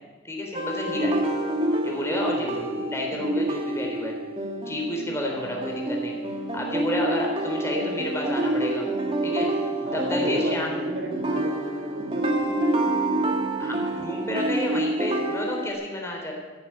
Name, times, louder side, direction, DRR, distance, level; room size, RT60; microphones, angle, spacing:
voice 1, 0.2-1.2 1.8-2.5 2.9-4.1 4.7-6.2 6.5-8.9 9.2-9.5 9.9-10.7 13.6-16.3, left 1 dB, 15° left, 0 dB, 3.6 m, -30 dB
sound 1, 0.5-15.7, right 1 dB, 30° right, 1.7 m, -27 dB
voice 2, 2.4-2.9 5.2-5.6 9.8-12.6, equal, 85° right, 2 dB, 3.9 m, -35 dB
15.5 x 9.6 x 9.0 m, 1.4 s
head